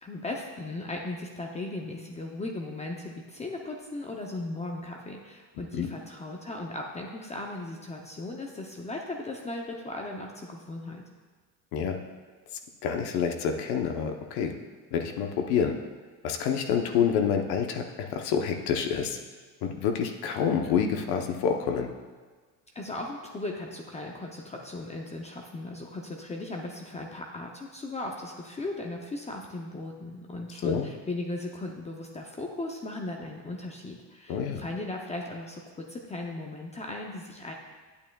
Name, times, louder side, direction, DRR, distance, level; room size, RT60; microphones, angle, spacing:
voice 1, 0.0-11.0 22.7-37.5, left 2 dB, 15° left, 0 dB, 0.5 m, -37 dB
voice 2, 12.8-14.5 14.9-15.8 16.2-19.2 19.6-21.9 30.6-30.9 34.3-34.6, left 7 dB, 70° left, 4 dB, 0.9 m, -27 dB
9.0 x 8.5 x 2.3 m, 1.5 s
cardioid pair, 130°, 39 cm